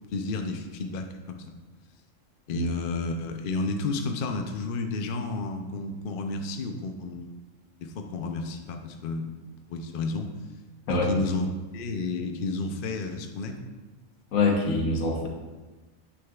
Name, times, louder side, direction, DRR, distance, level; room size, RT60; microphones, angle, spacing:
voice 1, 0.1-1.5 2.5-7.3 7.8-9.3 9.7-10.3 10.9-11.5 11.7-13.6, left 3 dB, 55° left, 4 dB, 0.6 m, -31 dB
voice 2, 14.3-15.3, left 3 dB, 80° left, 1 dB, 1.4 m, -24 dB
8.0 x 6.2 x 2.3 m, 1.2 s
omnidirectional pair, 1.4 m